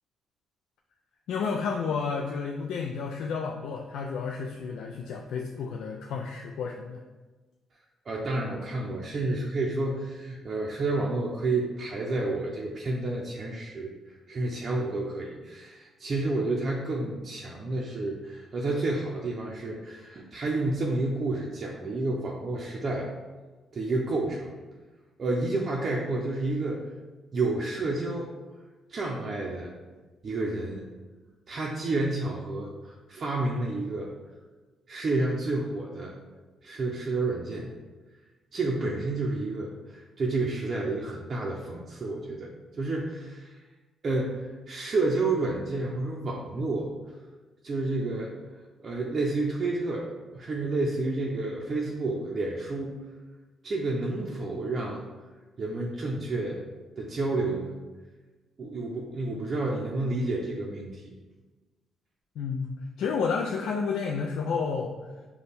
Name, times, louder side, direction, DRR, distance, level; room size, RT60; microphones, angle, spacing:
voice 1, 1.3-7.0 62.4-65.0, left 5 dB, 80° left, 1 dB, 0.3 m, -31 dB
voice 2, 8.1-13.9 14.3-23.1 23.7-24.6 25.2-26.8 27.3-28.3 28.9-29.7 30.2-30.9 31.5-34.1 34.9-36.2 36.6-37.7 38.5-42.5 42.8-43.5 44.0-46.9 47.6-48.4 48.8-50.1 50.3-52.9 53.6-55.0 55.6-56.6 57.0-57.7 58.6-61.2, right 2 dB, 45° right, -2 dB, 0.5 m, -30 dB
5.2 x 2.3 x 4.1 m, 1.3 s
cardioid pair, 90°, 0 cm